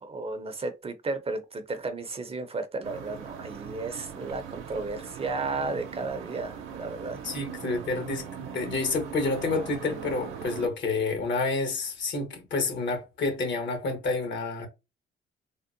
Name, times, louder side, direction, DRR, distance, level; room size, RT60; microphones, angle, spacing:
voice 1, 0.0-7.2, right 3 dB, 30° right, 0.5 m, -33 dB
sound 1, 2.8-10.7, right 7 dB, 90° right, 0.6 m, -40 dB
voice 2, 7.2-14.7, left 3 dB, 65° left, 1.1 m, -29 dB
3.5 x 2.1 x 2.5 m
cardioid pair, 90°, 20 cm